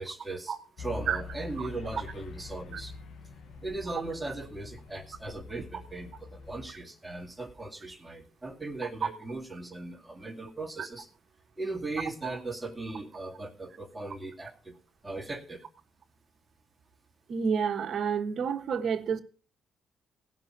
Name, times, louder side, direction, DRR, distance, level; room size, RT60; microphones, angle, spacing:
voice 1, 0.0-2.9 3.6-11.1 11.6-14.7 15.0-15.6, right 2 dB, 15° right, 3 dB, 2.1 m, -38 dB
sound 1, 0.8-6.7, left 4 dB, 70° left, 1.2 m, -44 dB
voice 2, 17.3-19.2, right 6 dB, 55° right, 6 dB, 1.3 m, -29 dB
17.5 x 6.0 x 5.9 m, 0.40 s
cardioid pair, 90°, 0 cm